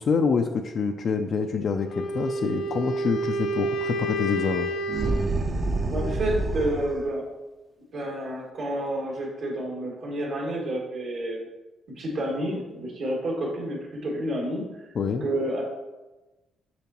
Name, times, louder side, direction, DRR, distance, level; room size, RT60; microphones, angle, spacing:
voice 1, 0.0-4.7 14.9-15.2, left 5 dB, 55° left, 4 dB, 0.4 m, -26 dB
Wind instrument woodwind instrument, 1.8-5.4, right 1 dB, 80° left, 0.9 m, -29 dB
sound 1, 4.9-7.1, right 2 dB, 35° right, 0.6 m, -27 dB
voice 2, 5.9-7.2 7.9-11.4 12.0-14.7 15.2-15.6, right 1 dB, 65° right, -2 dB, 2.0 m, -29 dB
7.0 x 5.1 x 2.9 m, 1.1 s
cardioid pair, 90°, 0 cm